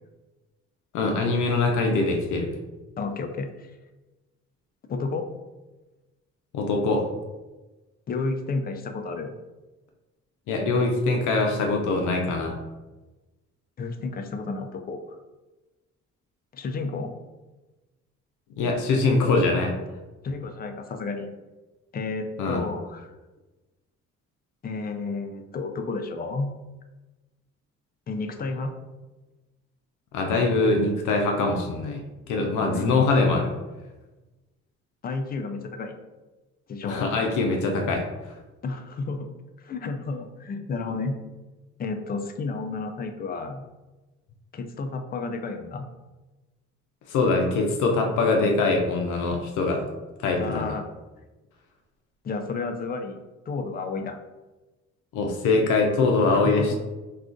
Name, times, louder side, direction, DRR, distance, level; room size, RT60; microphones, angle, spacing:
voice 1, 0.9-2.5 6.5-7.1 10.5-12.5 18.6-19.7 22.4-22.6 30.1-33.5 36.8-38.0 47.1-49.8 50.2-50.7 55.1-56.8, left 3 dB, 80° left, 1 dB, 0.5 m, -23 dB
voice 2, 3.0-3.7 4.9-5.3 8.1-9.3 13.8-15.0 16.5-17.1 20.2-21.3 21.9-23.1 24.6-26.5 28.1-28.7 32.7-33.1 35.0-36.0 36.7-37.1 38.6-39.3 39.6-41.2 41.8-43.6 44.5-45.9 50.4-50.9 52.2-54.2 56.2-56.8, left 3 dB, 30° left, 6 dB, 0.4 m, -31 dB
2.4 x 2.4 x 3.7 m, 1.1 s
cardioid pair, 90°, 30 cm